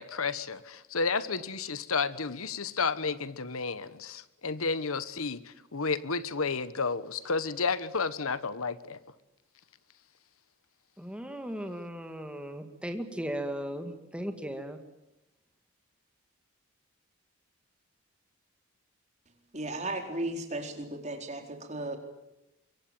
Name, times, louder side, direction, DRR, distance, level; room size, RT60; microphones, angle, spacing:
voice 1, 0.0-9.0, left 4 dB, 75° left, 15 dB, 1.3 m, -31 dB
voice 2, 11.0-14.8, equal, 5° right, 6 dB, 2.1 m, -37 dB
voice 3, 19.5-22.0, right 2 dB, 30° right, 5 dB, 4.2 m, -35 dB
25.0 x 24.0 x 9.0 m, 0.93 s
head